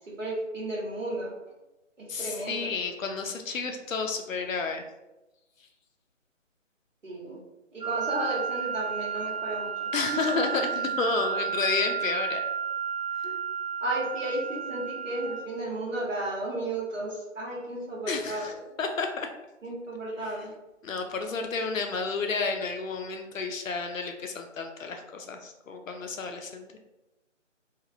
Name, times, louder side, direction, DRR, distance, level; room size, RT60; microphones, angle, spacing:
voice 1, 0.2-1.3 2.0-2.7 7.0-7.4 7.7-10.3 13.8-18.5 19.6-20.5, right 1 dB, 75° right, -6 dB, 1.3 m, -33 dB
voice 2, 2.1-4.8 9.9-12.4 18.1-19.3 20.2-20.4 20.8-26.7, left 4 dB, 85° left, 4 dB, 0.5 m, -31 dB
sound 1, 7.8-15.4, right 7 dB, 35° right, 0.9 m, -32 dB
2.8 x 2.4 x 2.6 m, 1.0 s
figure-of-eight pair, 150°, 38 cm